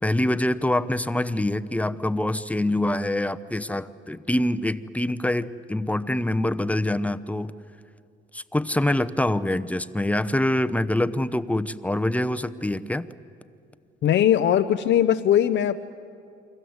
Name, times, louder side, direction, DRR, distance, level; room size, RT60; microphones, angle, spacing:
voice 1, 0.0-7.5 8.3-13.1, left 1 dB, 5° left, 11 dB, 0.9 m, -25 dB
voice 2, 14.0-15.8, left 10 dB, 65° left, 8 dB, 0.8 m, -20 dB
29.5 x 24.0 x 8.0 m, 2.4 s
cardioid pair, 90°, 20 cm